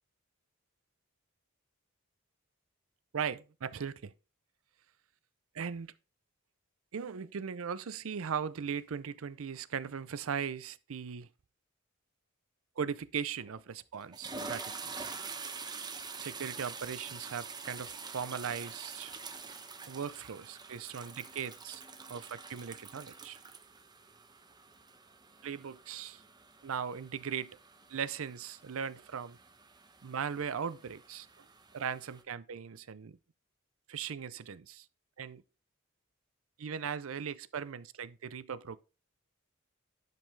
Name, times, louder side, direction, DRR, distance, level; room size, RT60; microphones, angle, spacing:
voice 1, 3.1-4.1 5.5-5.9 6.9-11.3 12.8-15.1 16.2-19.1 19.9-21.8 22.1-23.4 25.4-26.2 26.6-27.6 27.9-29.4 30.0-31.5 31.7-33.2 33.9-34.9 35.2-35.4 36.6-38.8, right 7 dB, 80° right, 0.5 m, -38 dB
sound 1, 13.4-13.6 14.0-32.2, right 4 dB, 20° right, 0.8 m, -46 dB
10.5 x 5.4 x 3.2 m
head